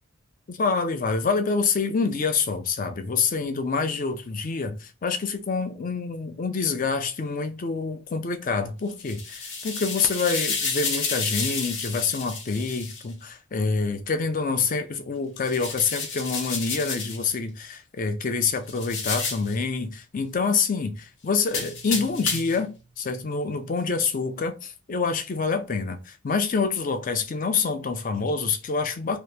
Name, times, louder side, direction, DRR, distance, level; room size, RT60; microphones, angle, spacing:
voice 1, 0.5-29.2, left 4 dB, 40° left, 0.4 m, -27 dB
sound 1, 8.9-13.0 15.4-17.2 18.7-19.5 21.5-22.6, left 4 dB, 60° left, 0.8 m, -31 dB
2.9 x 2.4 x 3.3 m
head